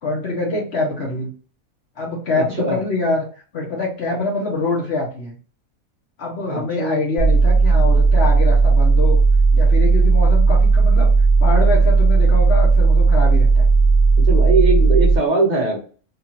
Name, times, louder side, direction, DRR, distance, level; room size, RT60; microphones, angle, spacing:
voice 1, 0.0-1.3 2.0-3.3 3.5-5.4 6.2-9.2 9.5-11.1 11.4-13.7, left 2 dB, 50° left, -2 dB, 0.9 m, -24 dB
voice 2, 2.4-2.8 6.5-7.0 14.3-15.8, right 3 dB, 40° right, 0 dB, 0.7 m, -21 dB
sound 1, 7.2-15.2, right 4 dB, 85° left, 1.5 m, -14 dB
2.9 x 2.4 x 4.2 m, 0.40 s
omnidirectional pair, 1.6 m